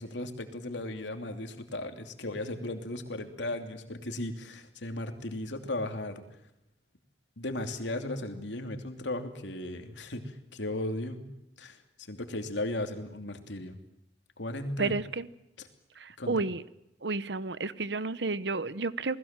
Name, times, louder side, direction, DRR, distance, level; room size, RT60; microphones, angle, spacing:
voice 1, 0.0-6.2 7.4-11.2 11.6-11.8 12.1-13.8 14.4-15.0 15.6-15.7 16.2-16.5, left 1 dB, 80° left, 2.8 m, -36 dB
voice 2, 14.8-15.3 16.0-16.6 17.0-19.2, right 3 dB, 70° right, 1.0 m, -31 dB
28.5 x 20.0 x 7.5 m
head